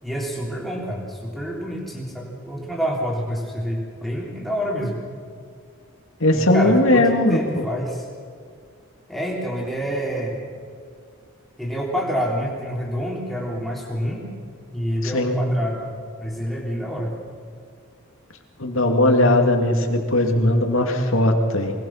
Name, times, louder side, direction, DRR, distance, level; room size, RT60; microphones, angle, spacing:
voice 1, 0.0-5.0 6.3-8.0 9.1-10.5 11.6-14.3 14.7-15.8 16.2-17.1, equal, ahead, -3 dB, 3.5 m, -27 dB
voice 2, 6.2-7.7 15.0-15.4 18.6-21.7, left 1 dB, 75° left, 4 dB, 2.5 m, -18 dB
23.5 x 20.0 x 6.0 m, 2.2 s
head